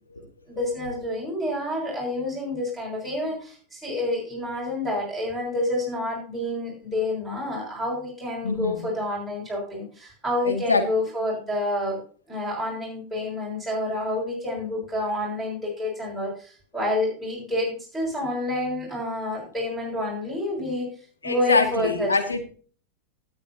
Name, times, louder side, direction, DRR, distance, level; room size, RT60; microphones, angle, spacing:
voice 1, 0.5-12.0 12.3-20.9 21.2-22.1, left 1 dB, 5° left, -4 dB, 6.6 m, -28 dB
voice 2, 8.4-8.8 10.4-10.8 21.2-22.5, left 3 dB, 80° left, 5 dB, 2.2 m, -24 dB
19.5 x 8.1 x 2.8 m, 0.42 s
figure-of-eight pair, 90°, 0 cm